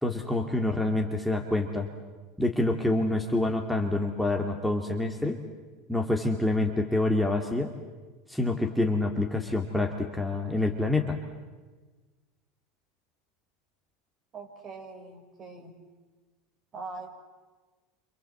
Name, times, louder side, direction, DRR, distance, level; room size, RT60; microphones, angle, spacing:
voice 1, 0.0-1.9 2.4-5.4 5.9-7.7 8.3-11.2, left 2 dB, ahead, 1 dB, 2.4 m, -27 dB
voice 2, 0.7-1.1 14.3-15.8 16.7-17.1, right 3 dB, 35° right, 4 dB, 5.3 m, -42 dB
28.0 x 26.5 x 7.9 m, 1.3 s
hypercardioid pair, 100°, 0 cm